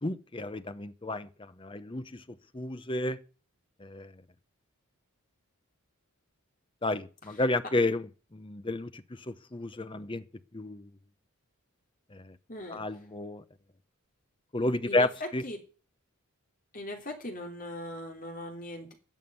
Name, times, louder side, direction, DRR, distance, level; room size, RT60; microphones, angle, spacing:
voice 1, 0.0-3.2 3.8-4.1 6.8-10.2 10.5-10.9 12.1-12.4 12.7-13.4 14.5-15.4, left 2 dB, 25° left, 0.7 m, -32 dB
voice 2, 12.5-12.8 14.8-15.1 15.4-15.6 16.7-18.9, left 1 dB, 40° left, 3.2 m, -39 dB
12.5 x 7.2 x 9.3 m
head